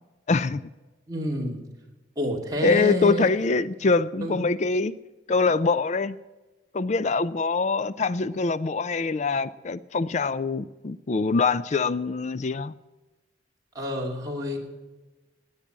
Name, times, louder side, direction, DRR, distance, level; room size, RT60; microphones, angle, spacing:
voice 1, 0.3-0.6 2.6-4.9 5.3-6.2 6.7-12.7, left 4 dB, 40° left, 16 dB, 0.4 m, -24 dB
voice 2, 1.1-1.6 2.2-3.3 4.2-4.4 13.7-14.6, equal, 20° right, -2 dB, 2.7 m, -28 dB
17.0 x 9.8 x 7.4 m, 1.2 s
head